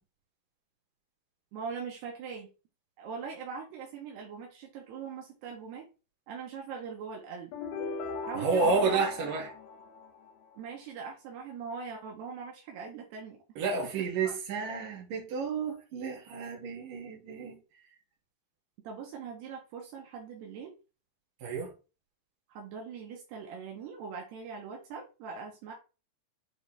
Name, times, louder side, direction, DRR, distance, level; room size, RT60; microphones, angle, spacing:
voice 1, 1.5-2.5 3.0-5.9 6.3-7.5 8.2-9.0 10.5-13.4 14.2-14.3 18.8-20.7 22.5-25.7, right 6 dB, 75° right, 3.5 m, -41 dB
sound 1, 7.5-10.6, left 4 dB, 75° left, 3.1 m, -38 dB
voice 2, 8.3-9.5 13.6-17.6 21.4-21.7, right 4 dB, 55° right, 3.6 m, -31 dB
9.2 x 4.0 x 3.4 m
omnidirectional pair, 4.8 m